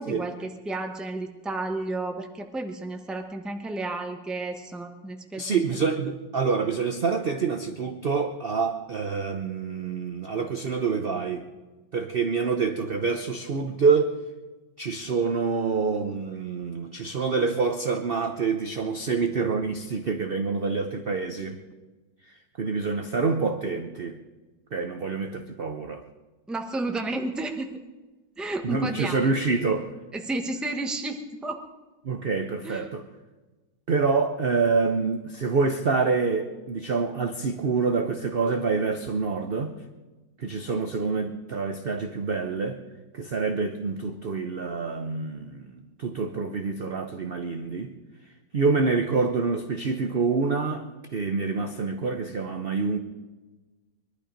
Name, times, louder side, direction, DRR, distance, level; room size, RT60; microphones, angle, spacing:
voice 1, 0.0-5.6 26.5-27.8 28.4-29.3 30.1-31.6 32.6-32.9, right 2 dB, ahead, 4 dB, 0.7 m, -32 dB
voice 2, 5.4-11.5 11.9-14.1 14.8-21.6 22.3-24.2 24.7-26.0 28.6-29.9 32.0-33.0 33.9-39.7 40.4-42.8 43.1-47.9 48.5-50.8 51.1-53.0, right 4 dB, 60° right, 6 dB, 0.6 m, -26 dB
22.0 x 12.0 x 5.2 m, 1.2 s
omnidirectional pair, 2.1 m